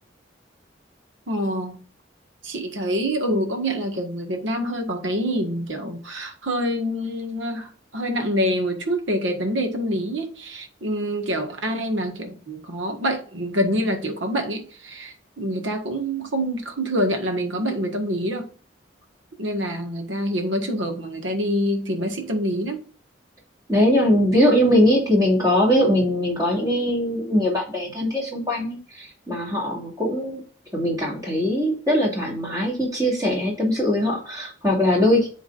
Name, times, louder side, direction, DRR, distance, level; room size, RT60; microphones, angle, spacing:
voice 1, 1.3-1.8 2.4-18.5 19.4-22.8, equal, 85° right, 1.6 m, -26 dB
voice 2, 23.7-30.4 30.7-35.3, equal, 20° right, 2.5 m, -21 dB
10.5 x 3.8 x 2.6 m
head